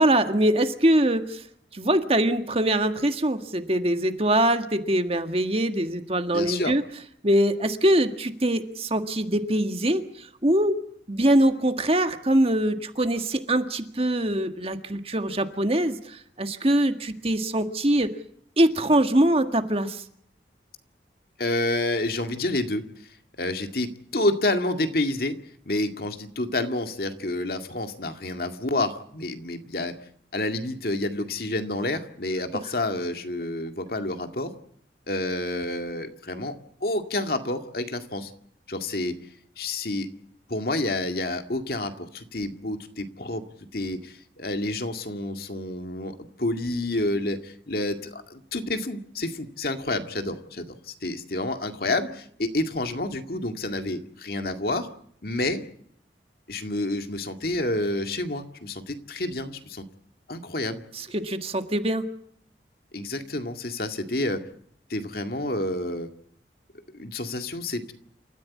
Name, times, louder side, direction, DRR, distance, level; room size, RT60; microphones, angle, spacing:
voice 1, 0.0-1.4 1.7-6.8 7.2-10.8 11.1-18.1 18.6-20.0 60.9-62.1, right 1 dB, 35° right, 7 dB, 1.7 m, -23 dB
voice 2, 6.3-6.8 21.4-22.8 23.4-25.4 25.7-29.9 30.3-34.5 35.1-36.5 36.8-38.3 38.7-39.2 39.6-40.1 40.5-43.4 43.7-54.9 55.2-55.6 56.5-59.8 60.3-60.8 62.9-64.4 64.9-66.1 66.9-67.9, left 2 dB, 55° left, 6 dB, 2.1 m, -29 dB
28.5 x 14.5 x 8.4 m, 0.65 s
head